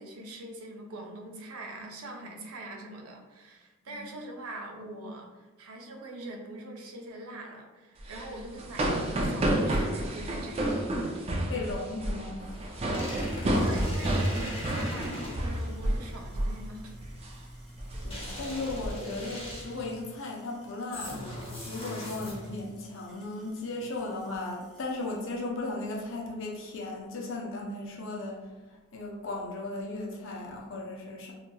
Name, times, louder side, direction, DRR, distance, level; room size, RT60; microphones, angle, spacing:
voice 1, 0.0-10.8 11.2-11.9 13.5-17.0, right 1 dB, 85° right, 1 dB, 0.5 m, -43 dB
sound 1, 8.0-16.1 16.3-16.6 17.0-17.3 17.8-18.9, right 1 dB, 30° right, 0.3 m, -30 dB
voice 2, 11.5-12.6 18.0-31.3, left 2 dB, 65° left, -1 dB, 0.6 m, -36 dB
sound 2, 12.5-15.7 18.1-19.9 20.9-22.7, left 1 dB, 30° left, 0.9 m, -40 dB
sound 3, 13.5-25.4, equal, 5° left, 0.7 m, -53 dB
2.8 x 2.8 x 2.2 m, 1.2 s
head